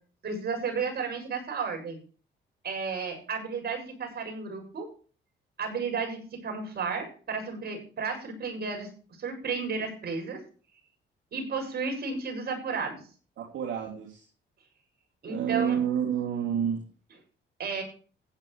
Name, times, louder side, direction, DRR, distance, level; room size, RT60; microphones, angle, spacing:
voice 1, 0.2-2.0 2.6-4.9 5.6-8.9 9.2-10.4 11.3-13.0 15.2-15.8 17.6-17.8, right 5 dB, 55° right, 2 dB, 7.5 m, -33 dB
voice 2, 13.4-14.2 15.3-16.8, right 8 dB, 75° right, -2 dB, 3.1 m, -29 dB
15.5 x 10.5 x 3.4 m, 0.39 s
cardioid pair, 90°, 20 cm